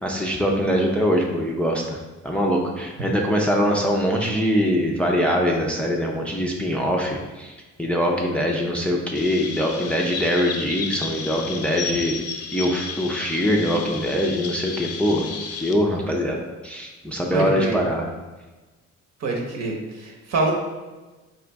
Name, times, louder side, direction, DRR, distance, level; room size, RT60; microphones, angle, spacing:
voice 1, 0.0-2.0 2.2-7.5 7.8-12.1 12.5-15.3 15.6-16.4 16.6-18.1, equal, 5° left, -1 dB, 0.5 m, -23 dB
Chirp tweet, 9.1-15.7, left 5 dB, 55° left, 0.5 m, -33 dB
voice 2, 17.3-17.8 19.2-20.5, right 2 dB, 60° right, 0 dB, 1.0 m, -25 dB
3.8 x 3.0 x 3.4 m, 1.2 s
cardioid pair, 90°, 30 cm